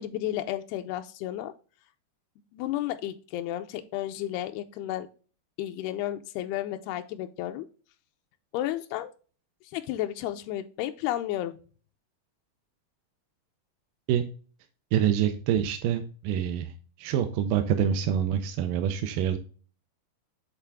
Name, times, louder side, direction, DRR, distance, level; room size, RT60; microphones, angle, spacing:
voice 1, 0.0-1.5 2.5-5.1 5.6-7.7 8.5-9.1 9.7-11.6, left 13 dB, 90° left, 6 dB, 2.6 m, -32 dB
voice 2, 14.9-16.7 17.0-19.4, right 9 dB, 80° right, 7 dB, 2.1 m, -26 dB
8.1 x 3.7 x 3.4 m, 0.37 s
omnidirectional pair, 4.5 m